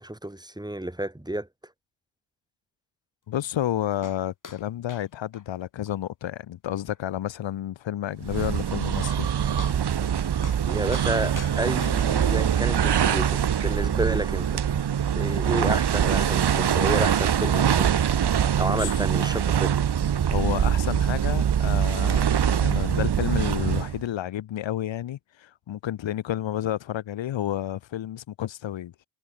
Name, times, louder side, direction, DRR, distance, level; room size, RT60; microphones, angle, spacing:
voice 1, 0.0-1.5 10.6-14.7 15.2-18.1 18.6-19.8, right 1 dB, 10° right, 3.8 m, -30 dB
voice 2, 3.3-9.3 18.7-18.9 20.3-28.9, left 12 dB, 75° left, 2.4 m, -30 dB
sound 1, 4.0-4.2 4.4-4.6 4.9-5.1 5.3-5.4 5.9-6.0 6.4-6.5 6.9-7.0 8.7-8.8 9.1-9.3 9.6-10.2 10.4-10.6 10.9-12.4 13.1-13.2, left 5 dB, 40° left, 6.7 m, -43 dB
sound 2, 8.2-24.0, right 9 dB, 60° right, 2.5 m, -23 dB
cardioid pair, 65°, 46 cm